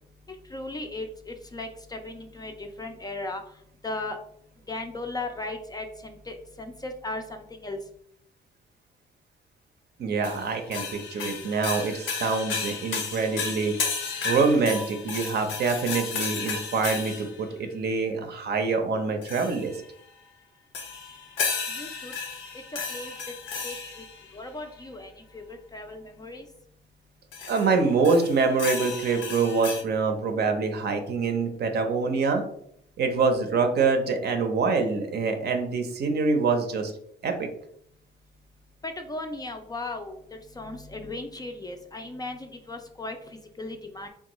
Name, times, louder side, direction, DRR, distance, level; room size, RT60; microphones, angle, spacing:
voice 1, 0.5-3.4 3.8-4.2 4.7-7.8 21.7-22.1 22.9-23.1 23.6-24.0 24.3-26.5 38.8-40.2 40.6-43.2 43.6-44.1, left 2 dB, 20° left, 5 dB, 0.4 m, -36 dB
voice 2, 10.0-13.8 14.2-19.7 27.5-32.4 33.0-36.9 37.2-37.5, right 4 dB, 55° right, 5 dB, 0.6 m, -25 dB
sound 1, 10.2-17.4 19.2-19.8 20.7-24.2 27.3-27.7 28.0-29.8, left 5 dB, 80° left, 0.7 m, -33 dB
3.5 x 2.3 x 3.0 m, 0.71 s
cardioid pair, 90°, 20 cm